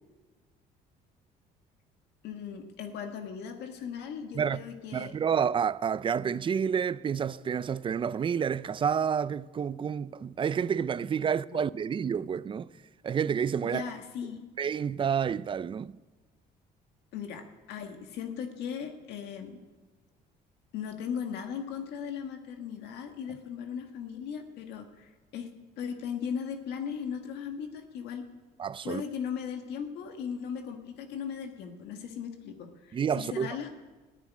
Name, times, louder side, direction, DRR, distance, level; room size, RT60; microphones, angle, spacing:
voice 1, 2.2-5.1 11.5-11.6 13.6-14.4 17.1-19.6 20.7-25.5 25.8-28.3 28.8-33.7, left 7 dB, 80° left, 1.8 m, -38 dB
voice 2, 4.9-12.7 13.0-13.8 14.6-15.9 28.6-29.0 32.9-33.6, right 7 dB, 30° right, 0.5 m, -29 dB
14.0 x 10.0 x 9.8 m
cardioid pair, 110°, 17 cm